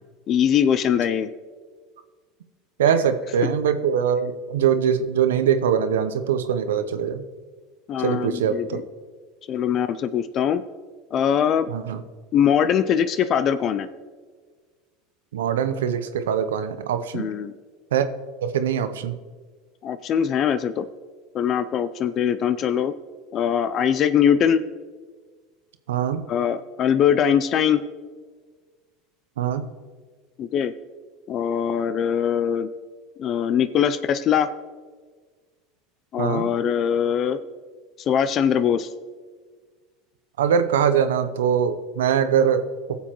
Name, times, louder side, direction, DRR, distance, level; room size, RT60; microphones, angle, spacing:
voice 1, 0.3-1.3 7.9-8.8 9.5-10.6 11.1-11.7 12.3-13.9 17.1-17.5 19.8-20.9 21.3-22.9 23.3-24.6 26.3-27.8 30.4-30.7 31.3-32.7 33.2-34.5 36.1-37.4 38.0-38.9, left 8 dB, 45° left, 12 dB, 0.4 m, -22 dB
voice 2, 2.8-7.2 8.0-8.8 11.7-12.0 15.3-17.3 17.9-18.1 18.4-19.2 25.9-26.2 29.4-29.7 36.2-36.5 40.4-42.9, right 8 dB, 85° right, 10 dB, 0.6 m, -22 dB
17.0 x 7.1 x 3.0 m, 1.5 s
hypercardioid pair, 95°, 0 cm